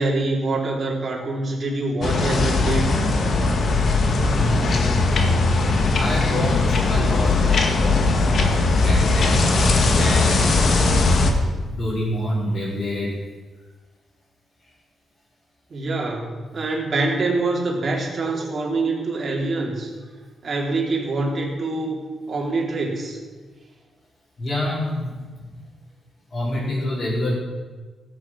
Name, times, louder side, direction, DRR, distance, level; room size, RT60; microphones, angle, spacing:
voice 1, 0.0-2.8 15.7-19.9 20.4-22.0 22.3-23.2, right 2 dB, 40° right, -2 dB, 3.8 m, -25 dB
sound 1, 2.0-11.3, left 3 dB, 55° left, 1.7 m, -19 dB
voice 2, 4.1-5.0 6.0-8.5 8.8-10.5 11.2-13.2 18.2-18.4 24.4-25.5 26.3-27.3, left 1 dB, 40° left, -9 dB, 5.1 m, -28 dB
17.5 x 8.4 x 6.1 m, 1.4 s
cardioid pair, 105°, 0 cm